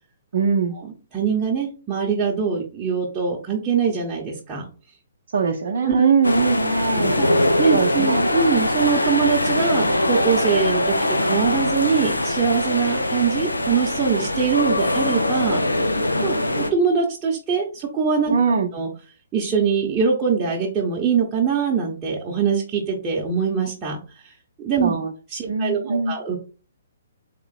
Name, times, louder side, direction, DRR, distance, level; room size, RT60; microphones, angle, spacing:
voice 1, 0.3-0.8 5.3-7.1 7.7-8.3 18.3-18.7 24.8-25.1 25.4-26.2, right 5 dB, 60° right, 0.6 m, -21 dB
voice 2, 1.1-4.7 5.8-6.1 7.2-15.6 16.2-18.3 18.7-18.9 19.3-24.3 24.6-25.0 25.3-26.4, right 6 dB, 20° right, 0.9 m, -23 dB
sound 1, 6.2-16.7, left 1 dB, 90° left, 0.6 m, -22 dB
3.7 x 2.9 x 4.1 m
figure-of-eight pair, 125°, 0 cm